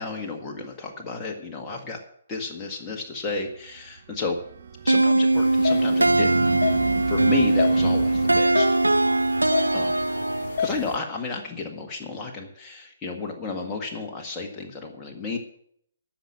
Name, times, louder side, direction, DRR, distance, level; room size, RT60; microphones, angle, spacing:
voice 1, 0.0-2.0 2.3-4.4 4.8-6.7 7.1-8.7 9.7-10.0 10.6-15.4, left 4 dB, 20° left, 0 dB, 1.7 m, -32 dB
sound 1, 3.6-8.4, right 6 dB, 55° right, 1.2 m, -33 dB
sound 2, 4.9-10.7, right 2 dB, 90° right, 0.4 m, -21 dB
sound 3, 5.3-11.0, left 6 dB, 50° left, 2.2 m, -32 dB
14.0 x 6.0 x 8.6 m, 0.66 s
figure-of-eight pair, 130°, 0 cm